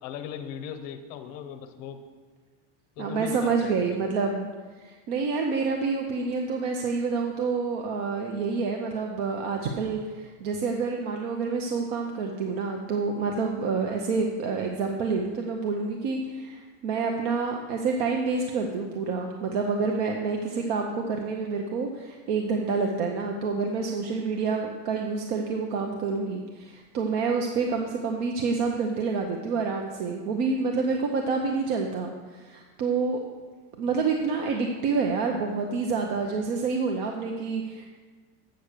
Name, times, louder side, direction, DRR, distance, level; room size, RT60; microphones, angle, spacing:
voice 1, 0.0-2.0 3.0-4.0, left 8 dB, 40° left, 9 dB, 0.6 m, -38 dB
voice 2, 3.0-4.5 4.8-33.2 33.8-37.8, right 4 dB, 50° right, 2 dB, 0.8 m, -28 dB
8.1 x 6.0 x 6.6 m, 1.4 s
cardioid pair, 180°, 40 cm